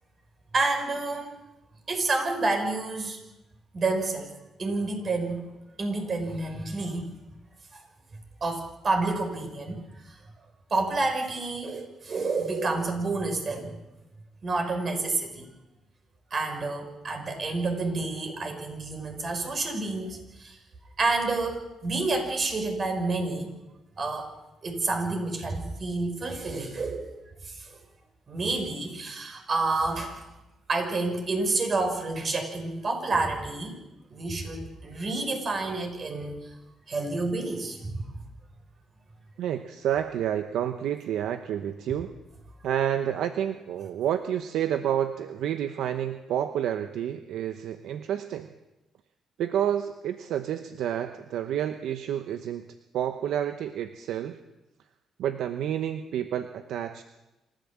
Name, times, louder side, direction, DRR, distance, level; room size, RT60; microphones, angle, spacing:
voice 1, 0.5-1.3 1.9-3.2 3.7-4.3 4.6-5.4 5.8-7.1 7.7-7.8 8.4-10.2 10.7-13.7 14.4-15.5 16.3-20.6 21.0-23.5 24.0-24.3 24.6-27.1 27.4-27.8 28.3-30.3 30.7-33.8 34.1-36.4 36.9-38.1, right 3 dB, 45° right, 5 dB, 5.7 m, -29 dB
voice 2, 39.4-42.1 42.6-48.5 49.4-52.7 52.9-54.4 55.2-57.0, right 10 dB, 80° right, 8 dB, 0.9 m, -29 dB
27.0 x 14.0 x 7.5 m, 0.98 s
cardioid pair, 90°, 0 cm